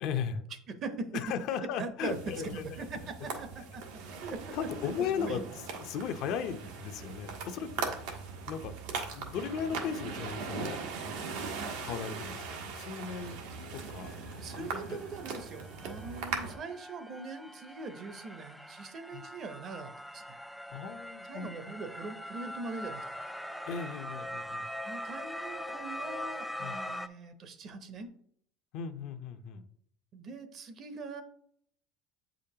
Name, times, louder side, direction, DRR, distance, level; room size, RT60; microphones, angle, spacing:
voice 1, 0.0-0.4 1.1-2.9 4.5-5.4 5.9-8.0 8.5-8.8 9.1-10.8 11.8-13.4 13.7-14.1 14.6-15.0 19.1-19.2 20.7-21.5 23.7-24.6 26.6-26.8 28.7-29.6, left 7 dB, 55° left, 8 dB, 0.7 m, -36 dB
voice 2, 0.7-1.1 1.6-3.8 4.2-4.5 4.8-5.4 14.4-20.4 21.2-23.0 24.8-28.1 30.1-31.2, right 4 dB, 40° right, 9 dB, 0.8 m, -42 dB
sound 1, 2.1-16.5, right 4 dB, 80° right, 1.4 m, -40 dB
sound 2, 12.5-12.6 13.0-27.1, left 1 dB, ahead, 0.3 m, -43 dB
8.1 x 5.1 x 2.9 m, 0.66 s
cardioid pair, 135°, 0 cm